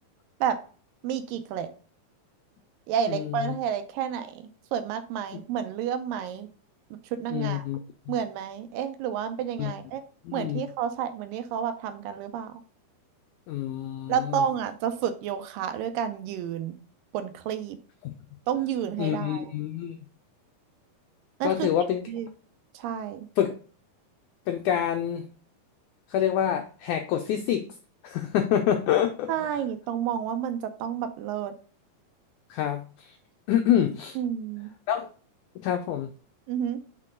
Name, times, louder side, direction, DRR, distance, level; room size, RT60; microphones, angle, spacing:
voice 1, 1.0-1.7 2.9-6.5 6.9-7.7 8.1-10.0 10.3-12.5 14.1-16.8 17.1-17.8 18.5-19.5 21.4-21.7 22.1-22.3 22.7-23.3 29.3-31.5 34.2-34.7 36.5-36.8, right 9 dB, 80° right, 9 dB, 2.3 m, -30 dB
voice 2, 3.1-3.5 7.3-7.8 8.1-8.2 9.6-9.7 10.3-10.6 13.5-14.4 18.0-18.1 19.0-20.0 21.4-22.1 23.4-23.5 24.5-25.3 26.1-27.7 28.0-29.5 32.5-33.2 33.5-34.2 34.9-35.1 35.6-36.1, left 10 dB, 85° left, 5 dB, 1.7 m, -27 dB
6.3 x 4.4 x 3.7 m, 0.40 s
omnidirectional pair, 4.2 m